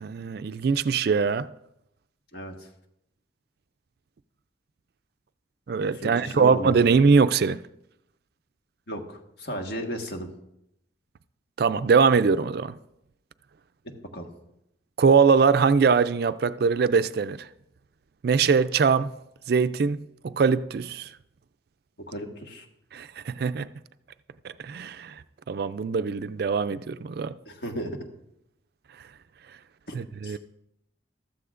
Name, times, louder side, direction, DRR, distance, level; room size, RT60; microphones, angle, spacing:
voice 1, 0.0-1.5 5.7-7.6 11.6-12.7 15.0-17.5 18.2-19.1 19.5-20.0 20.2-21.1 22.9-23.7 24.4-25.1 25.5-27.3 29.9-30.4, right 5 dB, 55° right, 0.3 m, -22 dB
voice 2, 2.3-2.7 5.9-7.0 8.9-10.3 14.1-14.3 22.1-22.7 27.4-28.0 29.9-30.0 30.2-30.4, equal, 60° left, 1.6 m, -35 dB
14.5 x 13.5 x 2.5 m
head